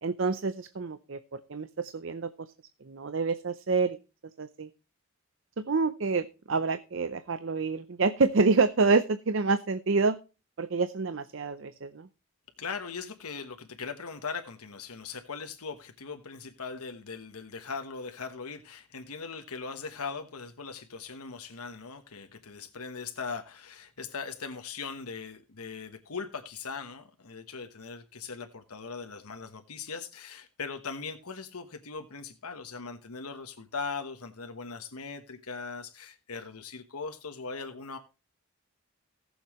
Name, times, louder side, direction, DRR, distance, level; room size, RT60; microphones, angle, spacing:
voice 1, 0.0-2.5 2.8-4.0 4.4-4.7 5.6-10.2 10.6-12.1, right 4 dB, 55° right, 0.6 m, -27 dB
voice 2, 12.6-38.0, left 5 dB, 85° left, 1.2 m, -40 dB
18.5 x 7.1 x 3.1 m
head